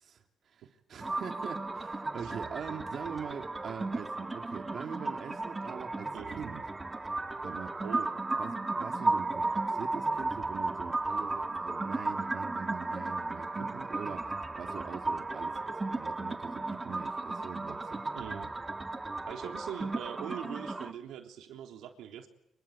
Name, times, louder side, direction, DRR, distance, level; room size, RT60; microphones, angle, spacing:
voice 1, 0.0-6.6 7.4-7.7 8.3-18.0, right 7 dB, 60° right, 4 dB, 2.5 m, -43 dB
sound 1, 1.0-20.9, right 2 dB, 20° right, 1.8 m, -35 dB
voice 2, 18.1-18.5 19.3-22.3, right 10 dB, 85° right, 4 dB, 3.5 m, -42 dB
26.5 x 24.0 x 8.5 m, 0.80 s
cardioid pair, 90°, 0 cm